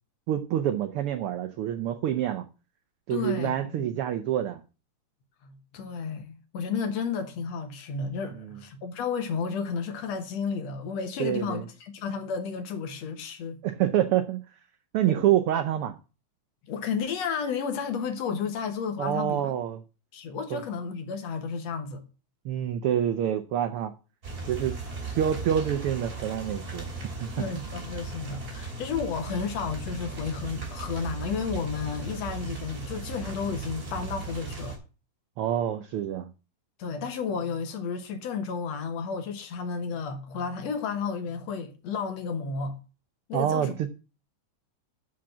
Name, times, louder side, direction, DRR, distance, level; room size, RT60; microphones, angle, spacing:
voice 1, 0.3-2.4 3.1-4.6 8.4-8.6 11.2-11.6 13.6-14.4 14.9-15.9 19.0-19.8 20.5-20.6 22.4-23.9 24.5-24.8 25.2-26.9 27.2-27.6 35.4-36.3 43.3-43.9, right 10 dB, 85° right, 1.2 m, -27 dB
voice 2, 3.1-3.9 5.4-13.6 16.7-19.5 20.1-22.0 27.4-34.8 36.8-42.8 43.3-43.7, left 5 dB, 65° left, 2.3 m, -32 dB
sound 1, 24.2-34.8, right 3 dB, 30° right, 3.3 m, -37 dB
7.6 x 6.0 x 7.1 m
omnidirectional pair, 3.3 m